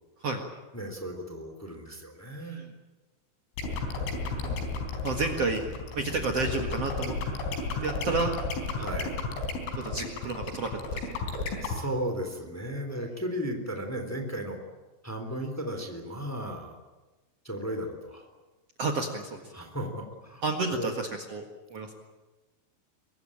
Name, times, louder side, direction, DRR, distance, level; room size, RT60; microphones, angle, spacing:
voice 1, 0.7-2.7 8.8-9.3 11.6-14.6 15.0-16.8 17.4-18.3 19.5-20.4 20.7-20.9, equal, 5° left, 4 dB, 2.0 m, -35 dB
sound 1, 3.6-11.8, left 4 dB, 70° left, 6.4 m, -32 dB
voice 2, 5.0-5.6 5.9-7.1 7.8-8.3 9.8-11.2 18.8-19.5 20.4-21.4 21.7-21.9, right 3 dB, 85° right, 3 dB, 1.3 m, -31 dB
24.0 x 22.5 x 8.8 m, 1.2 s
omnidirectional pair, 5.9 m